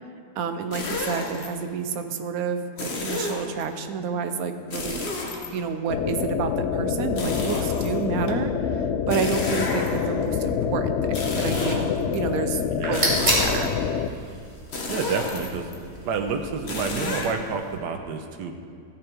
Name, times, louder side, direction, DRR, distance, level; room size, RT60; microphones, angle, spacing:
voice 1, 0.4-5.0 5.5-11.9 12.1-12.6 12.9-13.7, right 5 dB, 65° right, 7 dB, 1.1 m, -29 dB
sound 1, 0.7-1.5 2.8-3.6 4.7-5.9 7.2-8.3 9.1-10.2 11.0-12.2 12.9-13.9 14.7-15.7 16.7-17.3, left 2 dB, 45° left, 1.3 m, -31 dB
sound 2, 5.9-14.1, left 7 dB, 80° left, 0.6 m, -26 dB
sound 3, 12.6-17.8, equal, 20° right, 2.3 m, -31 dB
voice 2, 12.7-13.2 14.9-15.7 16.0-18.5, right 5 dB, 85° right, 5 dB, 1.4 m, -29 dB
14.0 x 7.0 x 4.5 m, 2.4 s
omnidirectional pair, 1.8 m